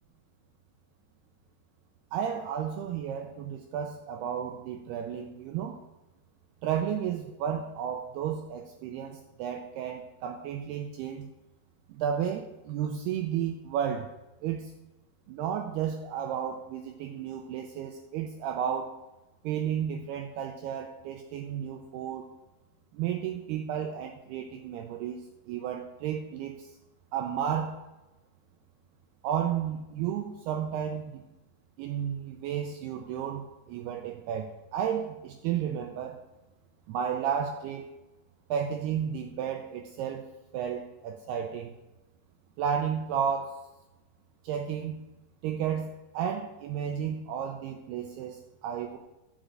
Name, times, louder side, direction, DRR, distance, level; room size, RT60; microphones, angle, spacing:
voice 1, 2.1-5.8 6.6-11.3 11.9-14.1 14.4-14.7 15.3-18.9 19.4-22.3 22.9-26.7 27.1-27.8 29.2-31.2 31.8-36.2 36.9-37.9 38.5-40.2 40.5-41.7 42.6-43.6 44.4-45.0 45.4-49.0, right 8 dB, 85° right, 4 dB, 2.3 m, -32 dB
11.5 x 5.1 x 7.6 m, 1.0 s
omnidirectional pair, 5.3 m